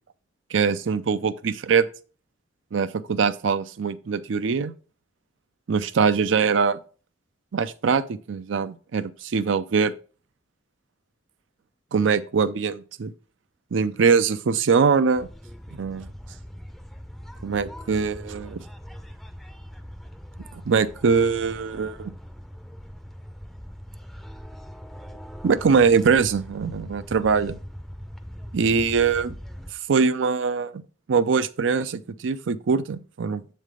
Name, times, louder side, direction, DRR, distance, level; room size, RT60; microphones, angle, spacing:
voice 1, 0.5-1.9 2.7-4.7 5.7-6.8 7.5-9.9 11.9-13.1 13.7-15.3 15.7-16.1 17.4-18.6 20.5-22.1 25.4-27.6 28.5-29.4 29.9-30.8 31.1-33.4, right 5 dB, 70° right, 0.5 m, -22 dB
sound 1, 15.1-29.7, equal, ahead, 0.5 m, -41 dB
7.4 x 3.3 x 5.0 m
head